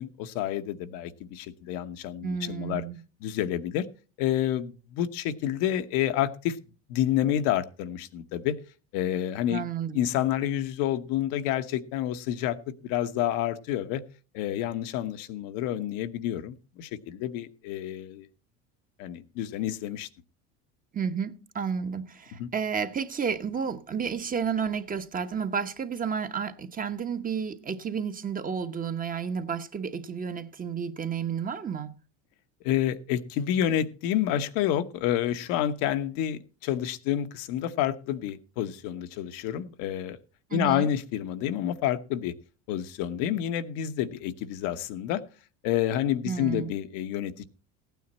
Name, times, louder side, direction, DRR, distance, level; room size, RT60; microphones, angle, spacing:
voice 1, 0.0-2.8 3.2-3.9 4.2-6.6 6.9-8.6 8.9-9.6 9.9-14.0 14.3-18.3 19.0-20.1 22.4-22.5 32.6-40.2 40.5-42.3 42.7-45.2 45.6-47.4, left 11 dB, 70° left, 1.1 m, -29 dB
voice 2, 2.2-3.0 9.5-10.0 20.9-31.9 40.5-40.9 46.2-46.7, right 6 dB, 25° right, 1.0 m, -31 dB
15.0 x 9.4 x 4.2 m
supercardioid pair, 110°, 35 cm